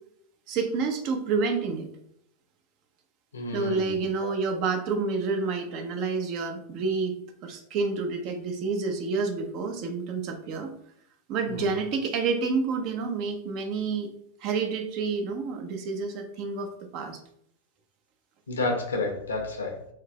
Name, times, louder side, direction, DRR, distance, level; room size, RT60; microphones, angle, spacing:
voice 1, 0.5-1.9 3.5-7.2 7.4-10.7 11.3-14.1 14.4-17.2, right 4 dB, 40° right, 5 dB, 0.7 m, -29 dB
voice 2, 3.3-3.9 11.5-11.7 18.5-19.8, left 3 dB, 70° left, 3 dB, 0.8 m, -30 dB
3.7 x 2.7 x 3.5 m, 0.70 s
figure-of-eight pair, 90°, 0 cm